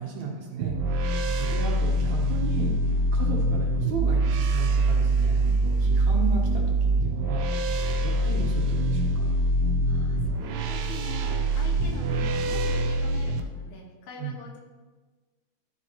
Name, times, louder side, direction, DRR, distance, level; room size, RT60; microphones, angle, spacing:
voice 1, 0.0-9.3 14.2-14.4, right 5 dB, 65° right, -1 dB, 2.3 m, -35 dB
sound 1, 0.6-13.4, right 1 dB, 85° right, 2.2 m, -24 dB
voice 2, 9.9-14.6, left 3 dB, 70° left, -1 dB, 2.7 m, -43 dB
12.5 x 7.2 x 2.9 m, 1.3 s
omnidirectional pair, 3.7 m